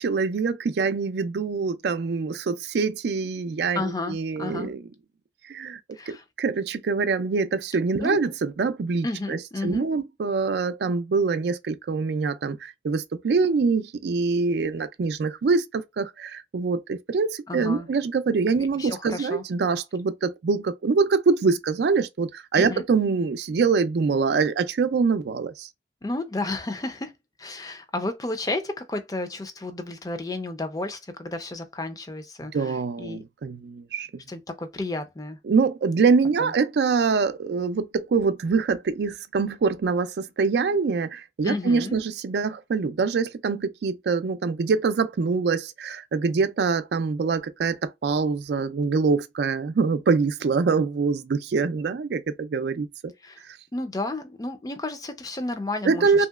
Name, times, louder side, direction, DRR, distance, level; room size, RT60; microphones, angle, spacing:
voice 1, 0.0-4.8 5.5-5.8 6.1-25.7 32.5-34.1 35.5-53.1 55.8-56.3, right 4 dB, 70° right, 0.4 m, -24 dB
voice 2, 3.7-4.7 5.9-6.2 8.0-8.2 9.0-9.9 17.5-17.9 18.5-19.4 22.5-22.8 26.0-27.1 27.4-33.2 34.3-35.4 36.4-36.5 41.4-42.0 53.2-53.4 53.7-56.3, left 2 dB, 20° left, 0.4 m, -32 dB
3.0 x 2.8 x 2.3 m
head